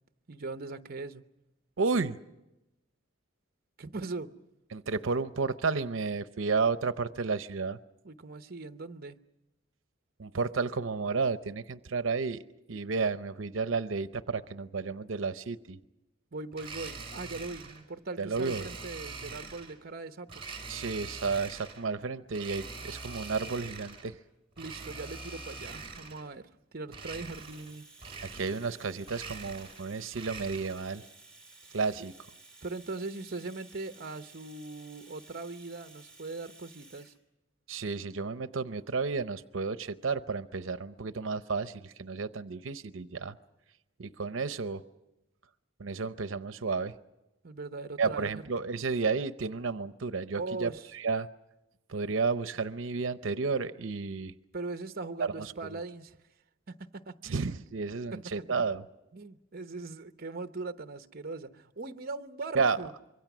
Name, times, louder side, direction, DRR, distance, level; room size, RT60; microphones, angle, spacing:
voice 1, 0.3-1.2 3.8-4.3 8.0-9.2 16.3-20.4 24.6-26.4 26.7-27.9 32.6-37.1 47.4-48.4 50.3-50.8 54.5-56.2 56.7-57.4 59.1-62.9, right 3 dB, 50° right, 0.9 m, -40 dB
voice 2, 1.8-2.2 4.7-7.8 10.2-12.4 12.7-15.8 18.2-18.7 20.7-24.2 28.2-31.1 31.7-32.1 37.7-43.3 44.0-44.8 45.8-46.9 48.0-51.3 51.9-54.3 55.2-55.7 57.2-58.8 62.5-62.8, right 4 dB, 85° right, 0.7 m, -32 dB
Domestic sounds home sounds, 16.5-17.8 18.3-19.8 20.3-21.9 22.3-24.1 24.5-26.3 26.9-27.7 28.0-28.8 29.0-30.9, right 4 dB, 30° right, 4.4 m, -43 dB
Domestic sounds home sounds 2, 27.3-37.2, right 3 dB, 5° left, 3.4 m, -55 dB
25.5 x 23.5 x 6.1 m
head